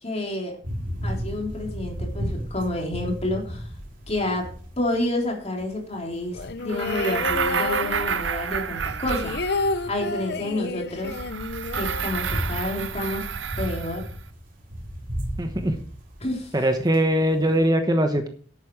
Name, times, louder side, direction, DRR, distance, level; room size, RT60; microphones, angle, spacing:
voice 1, 0.0-0.6 1.0-3.7 4.1-9.4 9.9-11.2 11.7-13.3 13.6-14.1 16.2-16.5, left 1 dB, 35° left, 1 dB, 3.5 m, -29 dB
sound 1, 0.6-17.7, equal, 50° right, 3.6 m, -35 dB
sound 2, 6.3-8.5 8.8-12.7 13.0-13.1 13.4-13.9, left 3 dB, 60° left, 0.7 m, -30 dB
sound 3, 6.7-9.9 11.0-14.2, right 6 dB, 75° right, 0.8 m, -30 dB
voice 2, 15.4-15.7 16.5-18.3, right 1 dB, 20° right, 6 dB, 1.1 m, -21 dB
11.5 x 8.6 x 4.7 m, 0.43 s
head